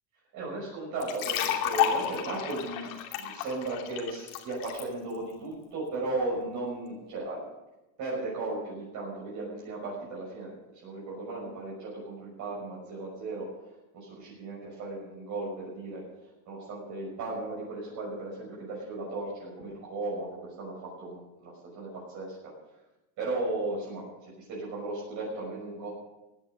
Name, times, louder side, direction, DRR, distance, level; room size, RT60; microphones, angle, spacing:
voice 1, 0.3-2.9 3.2-7.5 8.0-10.5 10.8-16.0 16.5-22.5 23.2-25.9, right 2 dB, 45° right, -5 dB, 6.2 m, -36 dB
sound 1, 1.0-4.8, left 10 dB, 70° left, 2.9 m, -31 dB
17.0 x 10.5 x 6.5 m, 1.0 s
supercardioid pair, 145°, 43 cm